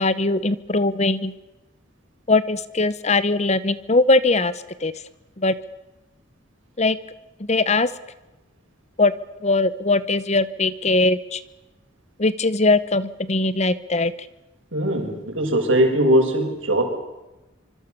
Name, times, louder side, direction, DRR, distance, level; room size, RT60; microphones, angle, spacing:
voice 1, 0.0-1.3 2.3-4.5 4.8-4.9 5.4-5.5 6.8-7.0 7.4-7.9 9.0-9.1 9.4-11.4 12.2-14.1, left 2 dB, 35° left, 15 dB, 1.1 m, -20 dB
voice 2, 14.7-16.8, right 1 dB, 80° right, 3 dB, 7.0 m, -20 dB
25.5 x 25.0 x 7.0 m, 1.0 s
head